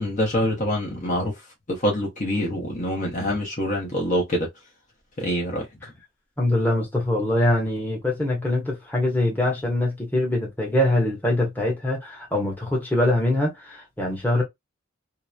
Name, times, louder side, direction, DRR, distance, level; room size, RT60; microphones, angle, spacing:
voice 1, 0.0-1.3 1.7-4.5 5.2-5.7, equal, 35° left, 0.8 m, -25 dB
voice 2, 6.4-14.4, left 1 dB, 10° left, 0.9 m, -23 dB
2.8 x 2.0 x 2.3 m
head